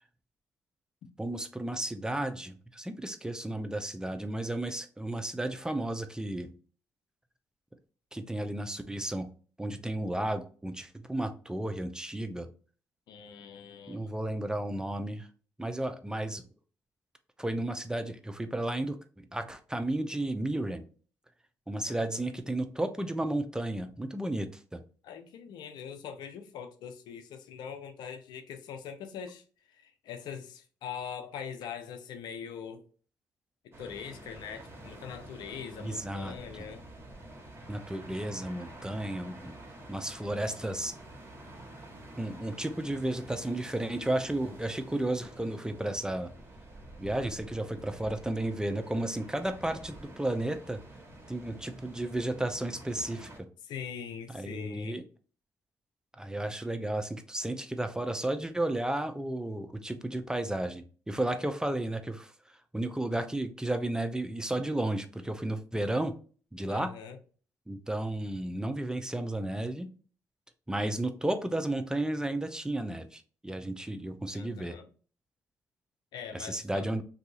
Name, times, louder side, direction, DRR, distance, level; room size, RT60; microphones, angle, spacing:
voice 1, 1.2-6.5 8.1-9.3 9.6-12.5 13.9-15.3 15.6-16.4 17.4-20.8 21.7-24.8 35.8-36.3 37.7-39.5 39.9-40.9 42.2-46.3 47.0-50.8 51.3-53.5 54.3-55.0 56.2-66.1 66.5-66.9 67.7-69.9 70.7-74.8 76.3-77.0, right 1 dB, 10° right, 0.5 m, -33 dB
voice 2, 13.1-14.1 21.9-22.2 25.0-29.4 29.7-32.8 33.6-36.8 53.6-55.0 66.7-67.2 74.3-74.9 76.1-76.9, left 7 dB, 75° left, 0.5 m, -42 dB
sound 1, 33.7-53.4, right 1 dB, 35° right, 1.3 m, -49 dB
2.7 x 2.3 x 3.9 m
supercardioid pair, 55°, 7 cm